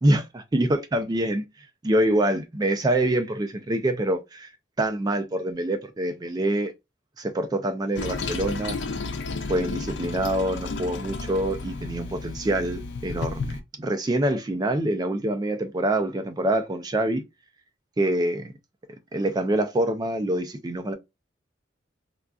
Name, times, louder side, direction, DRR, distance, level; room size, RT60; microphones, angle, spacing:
voice 1, 0.0-1.4 1.8-4.5 4.8-6.7 7.2-8.8 9.5-17.2 18.0-18.5 19.1-20.9, right 1 dB, 20° right, 0.3 m, -25 dB
Toilet flush, 8.0-13.6, left 3 dB, 70° left, 0.4 m, -32 dB
3.6 x 2.3 x 2.2 m
head